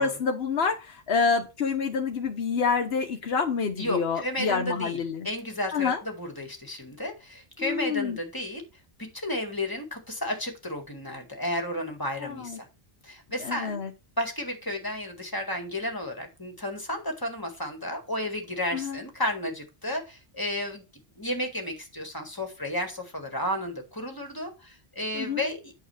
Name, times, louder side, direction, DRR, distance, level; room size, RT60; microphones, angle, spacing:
voice 1, 0.0-5.3 5.7-6.0 7.6-8.2 12.2-12.6 13.4-13.9 18.7-19.0 25.1-25.4, left 5 dB, 85° left, 3 dB, 1.2 m, -27 dB
voice 2, 3.8-5.0 5.2-8.6 9.0-12.7 13.0-13.8 14.2-20.8 21.2-25.7, left 1 dB, 20° left, 4 dB, 1.9 m, -32 dB
8.7 x 6.4 x 3.3 m, 0.27 s
omnidirectional pair, 1.0 m